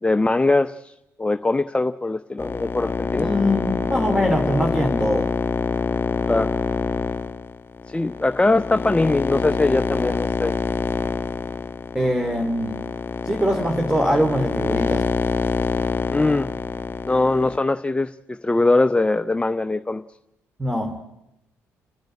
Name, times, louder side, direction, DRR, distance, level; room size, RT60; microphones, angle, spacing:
voice 1, 0.0-0.9 1.2-3.3 6.3-6.5 7.9-10.6 16.1-16.5 17.1-20.0, left 2 dB, 15° left, 10 dB, 0.7 m, -21 dB
sound 1, 2.4-17.6, left 5 dB, 30° left, 1.4 m, -26 dB
voice 2, 3.2-5.3 11.9-12.8 13.2-15.1 20.6-21.0, equal, 10° right, 3 dB, 2.6 m, -22 dB
29.5 x 10.5 x 9.7 m, 0.88 s
hypercardioid pair, 45°, 7 cm